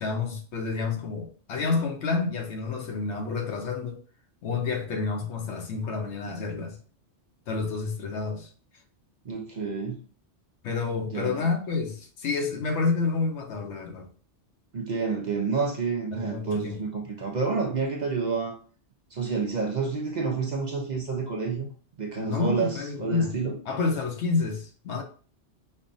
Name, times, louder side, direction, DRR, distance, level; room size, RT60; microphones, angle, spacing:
voice 1, 0.0-4.0 4.4-6.8 7.5-8.5 10.6-14.1 16.1-16.8 22.2-23.4 23.7-25.0, left 4 dB, 80° left, 0.9 m, -29 dB
voice 2, 9.2-10.0 11.1-11.5 14.7-18.6 19.1-21.7 22.0-23.6, right 4 dB, 50° right, 0.5 m, -29 dB
5.4 x 2.2 x 2.5 m
omnidirectional pair, 1.2 m